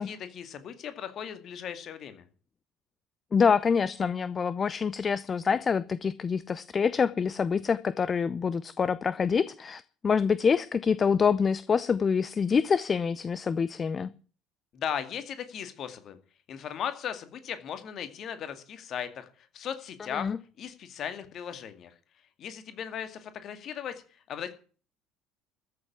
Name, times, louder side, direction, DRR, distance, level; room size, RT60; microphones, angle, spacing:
voice 1, 0.0-2.3 14.7-16.2 16.5-21.9 22.4-24.0 24.3-24.5, left 8 dB, 45° left, 2.2 m, -37 dB
voice 2, 3.3-14.1 20.1-20.4, left 6 dB, 30° left, 0.7 m, -26 dB
14.0 x 7.4 x 9.6 m
figure-of-eight pair, 60°, 0 cm